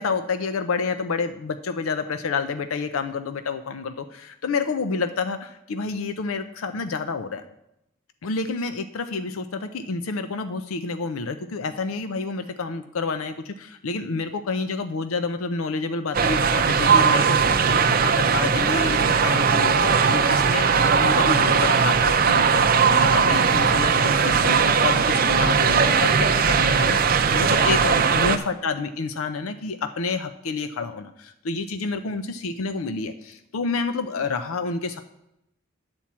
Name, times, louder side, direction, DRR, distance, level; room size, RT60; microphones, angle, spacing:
voice 1, 0.0-7.4 8.2-35.0, left 4 dB, 90° left, 9 dB, 0.5 m, -29 dB
sound 1, 16.1-28.4, right 6 dB, 45° right, 0.5 m, -19 dB
9.7 x 4.4 x 7.2 m, 0.82 s
head